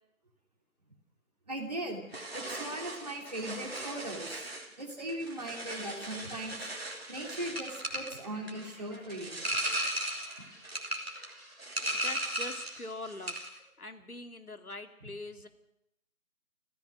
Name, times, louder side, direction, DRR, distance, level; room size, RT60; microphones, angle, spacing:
voice 1, 1.5-2.0 2.3-4.5 4.8-6.7 7.1-9.4 10.4-10.5, right 1 dB, 30° right, 0 dB, 2.9 m, -39 dB
sound 1, 2.1-12.8 13.1-13.6, right 1 dB, 45° right, 2.9 m, -37 dB
sound 2, 6.4-13.3, right 1 dB, ahead, 4.0 m, -55 dB
voice 2, 12.0-13.4 13.8-15.5, left 2 dB, 90° left, 6 dB, 2.6 m, -42 dB
29.0 x 14.5 x 6.3 m, 0.82 s
figure-of-eight pair, 180°, 43 cm